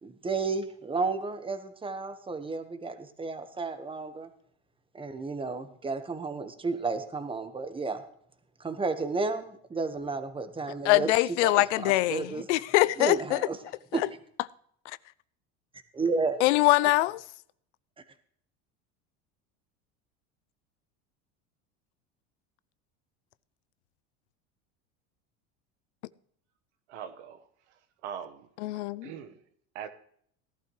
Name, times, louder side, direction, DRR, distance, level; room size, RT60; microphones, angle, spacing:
voice 1, 0.0-4.3 4.9-8.0 8.6-11.1 11.4-12.5 13.0-13.6 13.9-14.0 15.9-16.4, right 4 dB, 15° right, 1.3 m, -32 dB
voice 2, 10.8-13.4 13.9-14.0 16.4-17.2 28.6-29.1, left 19 dB, 85° left, 0.6 m, -23 dB
voice 3, 26.9-27.4 28.0-28.5 29.0-29.4 29.7-29.9, right 8 dB, 85° right, 1.4 m, -40 dB
17.5 x 12.0 x 3.2 m
supercardioid pair, 110°, 34 cm